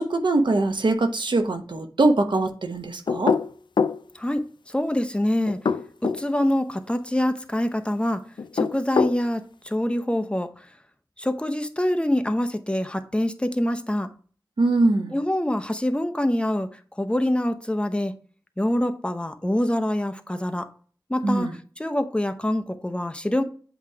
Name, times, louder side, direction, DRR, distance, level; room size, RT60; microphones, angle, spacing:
voice 1, 0.0-3.4 14.6-15.1 21.2-21.5, right 2 dB, 85° right, 0.9 m, -22 dB
sound 1, 3.1-4.0 5.5-6.2 8.4-9.2, left 5 dB, 80° left, 0.4 m, -23 dB
voice 2, 4.1-5.6 6.0-8.2 8.5-10.7 11.2-14.1 15.1-18.1 18.6-20.7 21.1-21.5 21.8-23.4, left 1 dB, 15° left, 0.7 m, -25 dB
8.0 x 3.1 x 4.7 m
wide cardioid pair, 70°, 8 cm